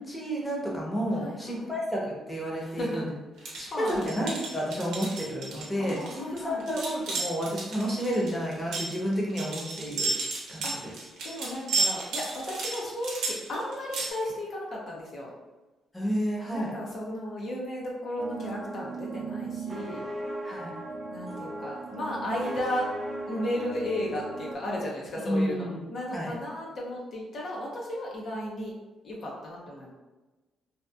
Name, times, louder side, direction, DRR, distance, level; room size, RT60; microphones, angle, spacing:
voice 1, 0.1-3.1 3.6-10.1 10.5-10.9 15.9-16.7 20.4-20.7 25.2-25.8 26.1-26.3, equal, 15° left, -4 dB, 0.8 m, -31 dB
voice 2, 1.2-1.7 2.6-3.1 3.4-4.0 5.7-6.7 10.6-10.7 11.2-15.3 16.5-20.1 21.1-22.9 23.3-28.7 29.0-29.9, left 1 dB, 55° left, -4 dB, 0.6 m, -34 dB
sound 1, 3.4-14.1, right 3 dB, 80° right, 0.6 m, -33 dB
sound 2, 18.2-24.5, right 2 dB, 25° right, 0.6 m, -37 dB
2.7 x 2.3 x 2.3 m, 1.2 s
cardioid pair, 90°, 0 cm